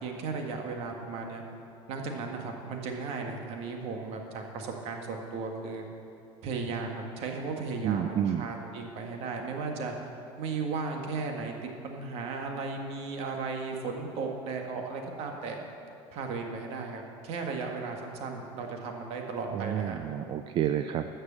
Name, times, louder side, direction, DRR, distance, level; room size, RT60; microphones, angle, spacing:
voice 1, 0.0-1.4 1.9-5.9 6.4-9.9 10.4-15.6 16.1-20.0, right 4 dB, 65° right, 3 dB, 1.8 m, -35 dB
voice 2, 7.8-8.5 19.5-21.1, right 10 dB, 50° right, 8 dB, 0.5 m, -29 dB
13.0 x 6.7 x 7.5 m, 2.6 s
cardioid pair, 120°, 11 cm